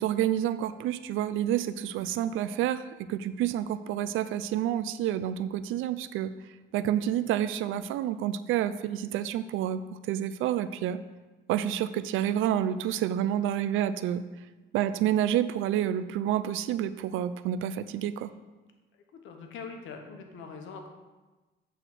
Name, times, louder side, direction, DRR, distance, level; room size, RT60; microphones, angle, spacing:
voice 1, 0.0-6.3 6.7-11.0 11.5-14.2 14.7-18.3, right 11 dB, 90° right, 13 dB, 0.4 m, -29 dB
voice 2, 19.2-20.9, left 5 dB, 80° left, 4 dB, 1.2 m, -42 dB
8.3 x 3.9 x 6.1 m, 1.2 s
cardioid pair, 90°, 20 cm